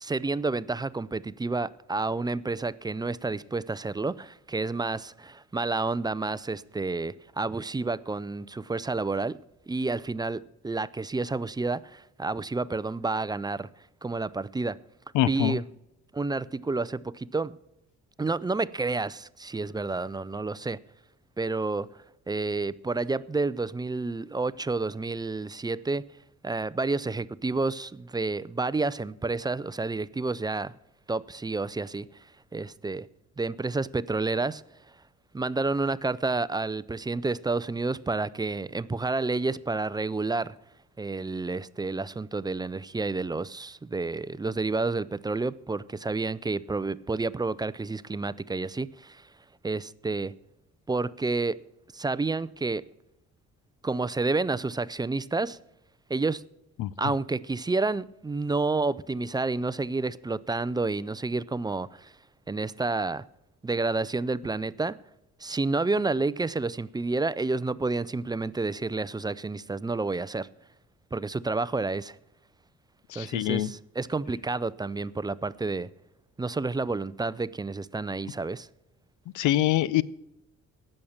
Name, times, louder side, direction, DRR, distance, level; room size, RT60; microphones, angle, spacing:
voice 1, 0.0-9.4 9.7-13.7 14.0-14.8 15.2-15.7 16.1-17.6 18.2-20.8 21.4-21.9 22.3-26.0 26.4-30.7 31.1-32.1 32.5-33.1 33.4-34.6 35.3-40.5 41.0-49.3 49.6-50.3 50.9-51.6 51.9-52.8 53.8-55.6 56.1-56.4 57.0-62.1 62.5-63.2 63.6-65.0 65.4-70.5 71.1-72.2 73.1-75.9 76.4-78.7, right 3 dB, 15° right, 0.4 m, -30 dB
voice 2, 15.1-15.6 56.8-56.9 73.1-73.7 79.3-80.0, left 14 dB, 85° left, 0.6 m, -24 dB
17.5 x 6.6 x 7.2 m
cardioid pair, 90°, 30 cm